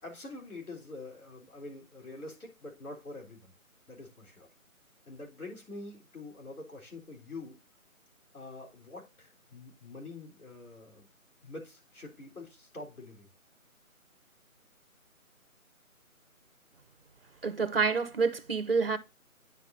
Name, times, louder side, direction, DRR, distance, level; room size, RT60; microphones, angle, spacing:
voice 1, 0.0-3.5 3.9-4.5 5.1-7.6 8.3-11.1 11.4-13.3, left 2 dB, 85° left, 3.9 m, -45 dB
voice 2, 17.4-19.0, right 4 dB, 45° right, 0.7 m, -28 dB
9.4 x 5.7 x 2.6 m
figure-of-eight pair, 165°, 43 cm